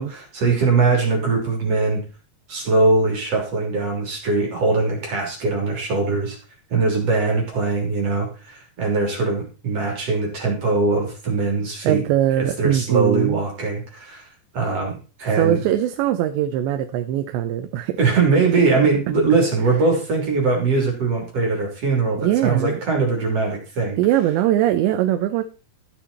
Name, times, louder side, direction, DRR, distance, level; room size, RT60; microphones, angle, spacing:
voice 1, 0.0-2.0 2.5-6.4 6.7-12.0 12.4-14.2 14.5-15.6 18.0-24.0, right 3 dB, 40° right, 1 dB, 3.9 m, -21 dB
voice 2, 11.8-13.4 15.3-18.0 22.2-22.8 24.0-25.4, right 12 dB, 85° right, 8 dB, 3.0 m, -21 dB
14.0 x 7.1 x 4.2 m, 0.34 s
omnidirectional pair, 5.0 m